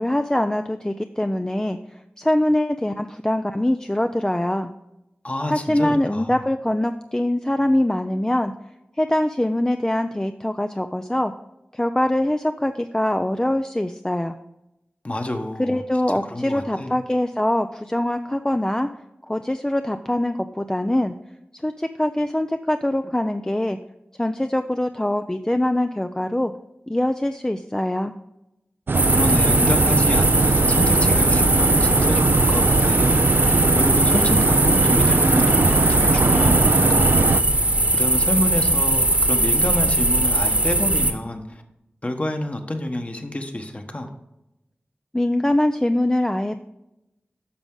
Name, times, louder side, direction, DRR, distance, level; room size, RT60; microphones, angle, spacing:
voice 1, 0.0-4.7 5.5-8.5 9.0-11.3 11.7-14.3 15.6-18.9 19.3-21.1 21.6-23.8 24.2-26.5 26.9-28.1 45.1-46.6, left 1 dB, 15° left, 8 dB, 0.4 m, -23 dB
voice 2, 5.2-6.4 15.0-15.8 16.1-16.9 29.1-33.3 33.7-37.4 37.9-41.6 42.0-44.1, left 1 dB, 35° left, 5 dB, 1.3 m, -28 dB
sound 1, 28.9-41.1, right 1 dB, 35° right, 1.1 m, -20 dB
sound 2, 28.9-37.4, right 3 dB, 60° right, 0.4 m, -20 dB
10.5 x 6.2 x 3.8 m, 0.91 s
wide cardioid pair, 50°, 4 cm